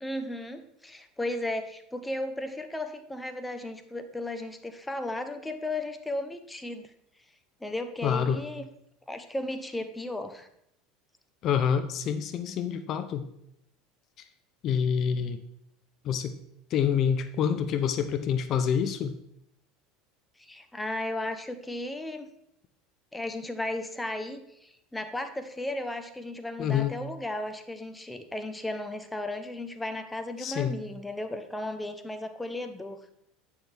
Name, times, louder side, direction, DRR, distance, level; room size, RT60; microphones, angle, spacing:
voice 1, 0.0-6.9 7.6-8.7 9.1-10.5 20.4-22.3 23.1-33.0, left 1 dB, 10° left, 8 dB, 0.7 m, -35 dB
voice 2, 8.0-8.4 11.4-13.2 14.6-15.4 16.0-16.4 16.7-19.1 26.6-27.0 30.4-30.8, left 7 dB, 50° left, 10 dB, 0.6 m, -27 dB
8.8 x 6.2 x 3.4 m, 0.76 s
supercardioid pair, 105°, 0 cm